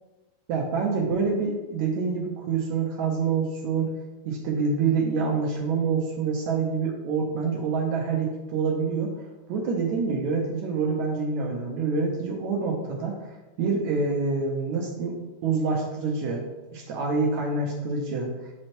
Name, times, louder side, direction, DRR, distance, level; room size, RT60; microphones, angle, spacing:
voice 1, 0.5-3.9 4.2-9.1 9.5-13.2 13.6-15.2 15.4-16.4 16.7-18.3, right 4 dB, 85° right, -1 dB, 1.6 m, -26 dB
8.6 x 3.2 x 4.4 m, 1.1 s
omnidirectional pair, 4.4 m